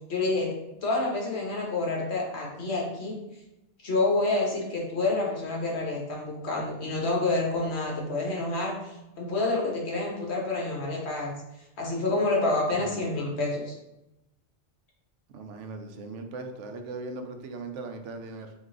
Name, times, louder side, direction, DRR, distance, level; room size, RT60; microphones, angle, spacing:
voice 1, 0.1-0.5 0.8-3.2 3.8-8.8 9.2-11.4 11.8-13.7, left 2 dB, 65° left, -2 dB, 1.3 m, -28 dB
voice 2, 12.7-13.0 15.3-18.5, right 3 dB, 80° right, 6 dB, 0.9 m, -39 dB
3.9 x 2.7 x 3.7 m, 0.91 s
omnidirectional pair, 1.2 m